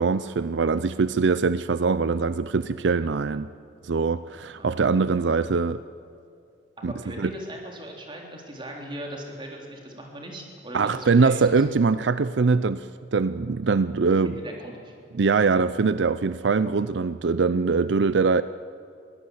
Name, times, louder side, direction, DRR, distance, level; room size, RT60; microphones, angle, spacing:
voice 1, 0.0-3.5 3.8-5.8 6.8-6.9 7.2-7.3 10.7-14.3 15.1-18.4, right 4 dB, 80° right, 14 dB, 0.5 m, -22 dB
voice 2, 4.6-4.9 6.9-11.6 14.2-15.0, right 1 dB, 25° right, 0 dB, 3.7 m, -39 dB
23.0 x 16.5 x 8.0 m, 2.5 s
head